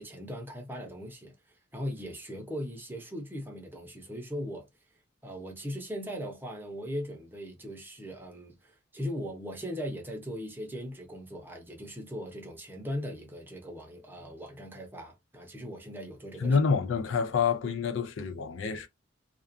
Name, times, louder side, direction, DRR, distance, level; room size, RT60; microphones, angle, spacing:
voice 1, 0.0-1.3 1.7-4.7 5.2-16.6, equal, 10° right, 0.7 m, -39 dB
voice 2, 16.4-18.9, left 5 dB, 80° left, 0.4 m, -27 dB
2.4 x 2.3 x 2.5 m
head